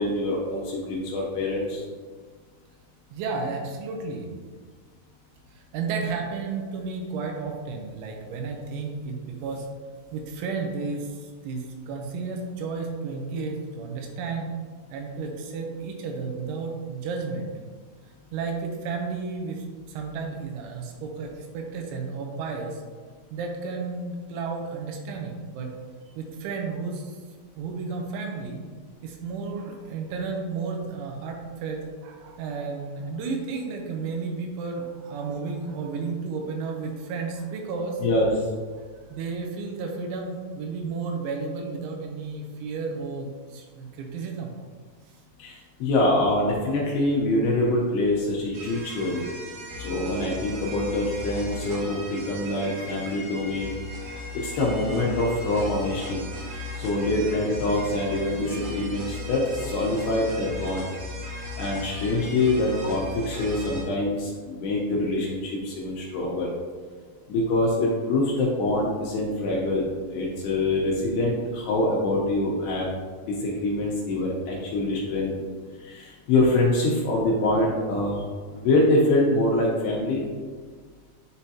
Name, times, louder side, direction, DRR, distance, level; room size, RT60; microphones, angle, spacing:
voice 1, 0.0-1.8 38.0-38.3 45.4-49.3 49.8-53.7 54.3-56.2 56.8-60.9 61.6-66.5 67.3-72.9 73.3-75.3 75.8-78.2 78.5-80.3, left 2 dB, 75° left, -4 dB, 2.6 m, -25 dB
voice 2, 3.1-4.3 5.7-9.7 10.1-14.5 14.9-17.5 18.3-22.8 23.3-25.7 26.2-27.1 27.6-28.7 29.0-38.0 38.7-38.8 39.1-44.6, right 4 dB, 85° right, 2 dB, 3.2 m, -32 dB
sound 1, 48.5-63.8, left 2 dB, 65° right, 2.8 m, -37 dB
10.5 x 3.6 x 2.8 m, 1.5 s
omnidirectional pair, 5.3 m